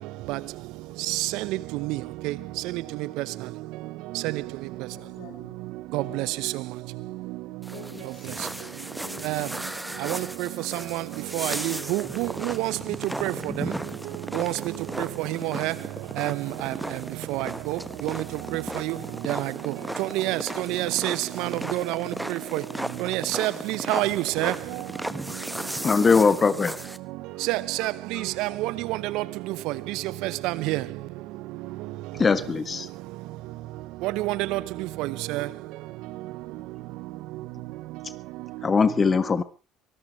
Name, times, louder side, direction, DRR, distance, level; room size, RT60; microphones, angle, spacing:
voice 1, 1.1-2.3 2.7-2.8 4.2-4.4 5.9-6.5 9.2-9.5 10.0-10.5 10.9-11.0 11.3-12.7 13.2-13.7 14.3-14.5 15.0-15.7 16.2-16.7 17.3-18.2 18.5-19.0 19.3-19.7 20.0-22.6 23.0-24.5 27.4-29.2 29.7-29.8 30.2-30.8 34.0-34.6 35.0-35.5, right 18 dB, 75° right, 0.8 m, -28 dB
voice 2, 4.9-5.6 6.0-6.7 7.7-9.6, left 7 dB, 75° left, 4.3 m, -48 dB
sound 1, 7.6-27.0, right 1 dB, 5° right, 1.1 m, -36 dB
voice 3, 25.8-26.7 32.1-32.9 38.6-39.4, left 5 dB, 35° left, 1.5 m, -21 dB
24.0 x 14.0 x 3.2 m
hypercardioid pair, 70°, 0 cm